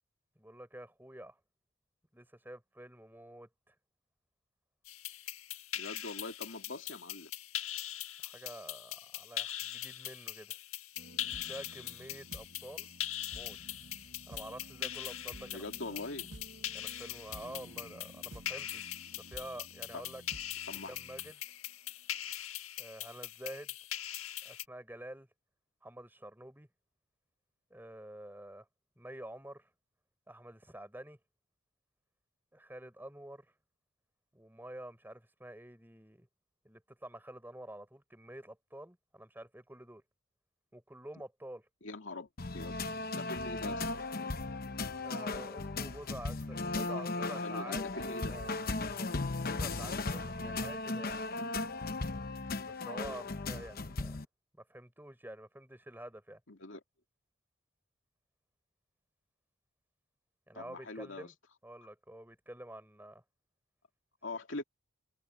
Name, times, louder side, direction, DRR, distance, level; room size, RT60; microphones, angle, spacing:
voice 1, 0.4-1.4 2.1-3.7 8.2-10.6 11.5-12.9 13.3-13.6 14.3-16.0 16.7-20.2 20.9-21.3 22.8-23.8 24.4-25.3 25.8-26.7 27.7-28.7 29.0-29.7 30.3-31.2 32.5-33.5 34.3-36.3 36.6-40.0 40.7-41.7 45.0-48.5 49.1-51.2 52.7-54.2 54.6-56.4 60.5-61.3 61.6-63.2, right 1 dB, 10° right, 4.5 m, -48 dB
sound 1, 4.8-24.6, left 12 dB, 80° left, 1.6 m, -41 dB
voice 2, 5.8-7.3 15.5-16.3 19.9-20.0 20.7-20.9 41.8-42.8 43.1-43.9 47.2-48.3 56.5-56.8 60.5-61.3 64.2-64.6, left 2 dB, 60° left, 2.6 m, -43 dB
sound 2, 11.0-21.7 22.3-22.4, right 1 dB, 60° right, 1.5 m, -53 dB
sound 3, 42.4-54.2, left 3 dB, 45° left, 0.9 m, -36 dB
head